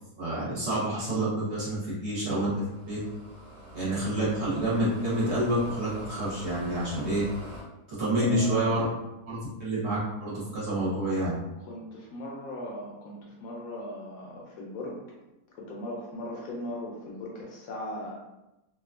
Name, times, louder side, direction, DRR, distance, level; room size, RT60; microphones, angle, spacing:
voice 1, 0.2-3.0 3.7-7.2 7.9-8.8 9.3-11.4, right 1 dB, 50° right, -8 dB, 1.1 m, -28 dB
sound 1, 2.5-7.6, right 1 dB, 90° right, 1.3 m, -43 dB
voice 2, 8.1-9.0 11.6-15.0 15.5-18.1, left 1 dB, 70° left, -2 dB, 0.9 m, -38 dB
2.8 x 2.3 x 2.4 m, 0.96 s
omnidirectional pair, 1.6 m